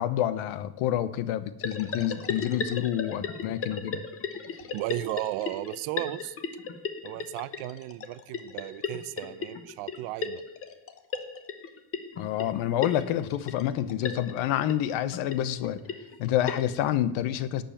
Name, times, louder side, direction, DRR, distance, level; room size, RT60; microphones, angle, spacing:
voice 1, 0.0-4.0 12.2-15.8 16.2-17.6, left 11 dB, 75° left, 1.0 m, -28 dB
sound 1, 1.6-16.9, left 5 dB, 25° left, 0.9 m, -36 dB
voice 2, 4.6-6.4 7.0-10.4, right 18 dB, 90° right, 0.7 m, -35 dB
12.0 x 5.3 x 8.7 m
cardioid pair, 165°, 49 cm